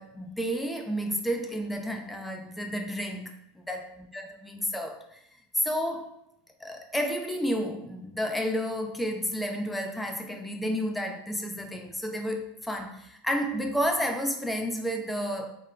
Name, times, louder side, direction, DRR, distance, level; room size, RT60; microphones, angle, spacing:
voice 1, 0.0-5.2 5.6-6.1 6.6-15.5, equal, 5° left, 3 dB, 0.4 m, -31 dB
2.4 x 2.1 x 3.0 m, 0.77 s
figure-of-eight pair, 85°, 0 cm